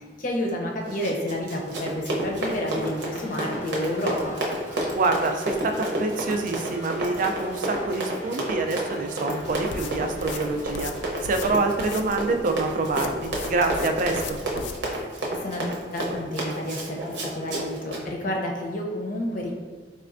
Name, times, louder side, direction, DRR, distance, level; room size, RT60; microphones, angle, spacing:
voice 1, 0.0-4.3 15.4-19.5, left 1 dB, 50° left, 0 dB, 0.6 m, -30 dB
Run, 0.8-18.0, right 1 dB, 85° right, 0.7 m, -30 dB
sound 1, 2.4-14.6, left 1 dB, 10° right, 0.6 m, -46 dB
voice 2, 4.9-10.9 11.2-14.4, right 3 dB, 45° right, 5 dB, 0.3 m, -26 dB
sound 2, 9.5-14.8, left 4 dB, 90° left, 0.3 m, -39 dB
4.2 x 3.2 x 2.5 m, 1.4 s
head